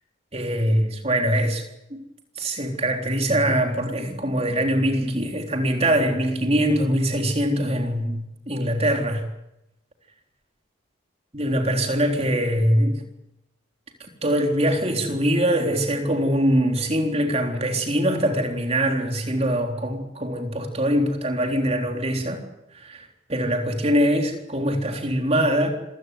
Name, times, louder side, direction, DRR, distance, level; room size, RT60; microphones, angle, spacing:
voice 1, 0.3-1.6 1.9-2.0 2.4-9.3 11.3-13.0 14.2-22.4 22.7-25.7, equal, 30° right, 4 dB, 3.7 m, -23 dB
26.5 x 16.0 x 9.5 m, 0.89 s
head